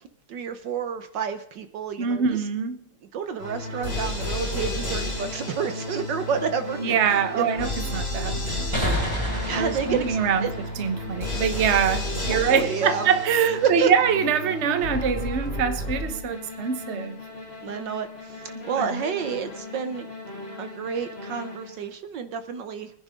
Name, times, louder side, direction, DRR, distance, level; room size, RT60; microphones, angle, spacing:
voice 1, 0.3-2.2 3.1-7.5 9.2-10.5 12.3-13.1 13.6-13.9 17.6-20.1 20.6-22.9, right 7 dB, 65° right, 1.4 m, -29 dB
voice 2, 2.0-2.8 6.8-9.0 9.5-17.2 18.8-19.0, right 7 dB, 40° right, 1.1 m, -24 dB
sound 1, 3.4-21.9, left 1 dB, 30° left, 3.7 m, -33 dB
sound 2, 8.7-12.2, equal, 10° right, 4.2 m, -30 dB
23.5 x 10.5 x 3.7 m
omnidirectional pair, 2.3 m